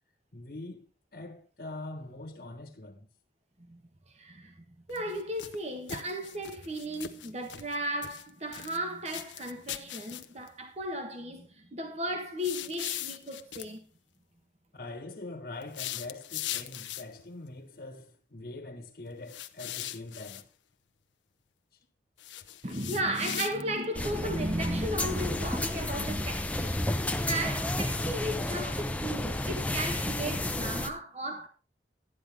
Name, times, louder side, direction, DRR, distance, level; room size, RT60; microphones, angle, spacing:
voice 1, 0.3-0.9 1.1-3.1 14.7-20.4, left 2 dB, 55° left, 1.4 m, -43 dB
voice 2, 4.1-13.9 22.6-26.8 27.2-31.5, right 1 dB, 35° right, 1.3 m, -35 dB
sound 1, 4.9-5.6 5.9-7.8 8.0-8.8 9.1-10.5 12.4-13.7 15.6-17.2 19.3-20.4 22.2-23.9, left 12 dB, 85° left, 0.7 m, -39 dB
sound 2, 23.9-30.9, left 1 dB, 10° left, 0.6 m, -31 dB
12.0 x 9.7 x 3.4 m
head